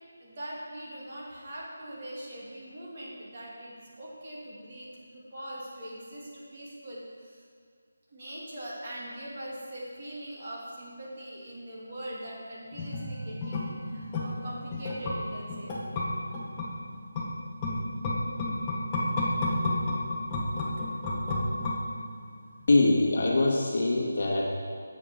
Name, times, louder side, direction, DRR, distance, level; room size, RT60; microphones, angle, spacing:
voice 1, 0.2-4.9 5.1-7.4 8.1-15.8, right 1 dB, 35° right, -5 dB, 2.3 m, -41 dB
sound 1, 12.7-22.3 22.6-22.7, left 1 dB, 15° left, 1.0 m, -32 dB
voice 2, 22.7-24.4, left 2 dB, 45° left, -3 dB, 1.8 m, -23 dB
7.8 x 5.6 x 6.9 m, 2.2 s
figure-of-eight pair, 170°, 0 cm